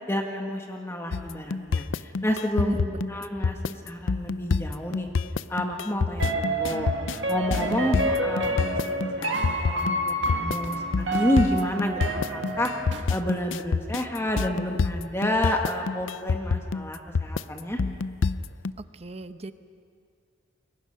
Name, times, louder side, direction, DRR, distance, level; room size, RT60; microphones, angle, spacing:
voice 1, 0.1-5.1 5.5-6.9 7.3-17.8, left 1 dB, 15° left, 2 dB, 1.5 m, -30 dB
sound 1, 1.1-18.7, left 4 dB, 90° left, 0.5 m, -27 dB
voice 2, 2.6-3.1 18.8-19.5, right 1 dB, 35° right, 10 dB, 0.8 m, -36 dB
sound 2, 6.2-13.0, right 1 dB, 70° right, 1.9 m, -29 dB
29.0 x 22.5 x 5.6 m, 2.3 s
head